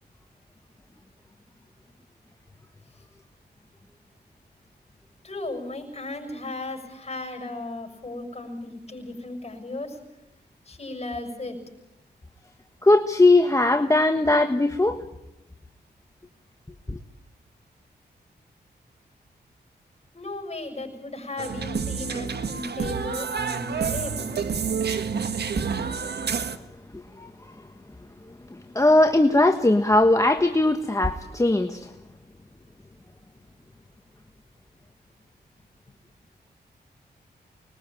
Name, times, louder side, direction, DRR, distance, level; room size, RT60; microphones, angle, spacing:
voice 1, 5.2-10.0 10.7-11.6 20.1-24.4, left 2 dB, 35° left, 4 dB, 7.0 m, -35 dB
voice 2, 12.8-15.0 16.9-17.0 27.2-27.3 28.5-31.9, left 2 dB, 15° left, 6 dB, 1.3 m, -19 dB
sound 1, 21.4-26.6, right 6 dB, 70° right, 1.6 m, -29 dB
25.0 x 21.5 x 8.9 m, 0.93 s
cardioid pair, 70°, 18 cm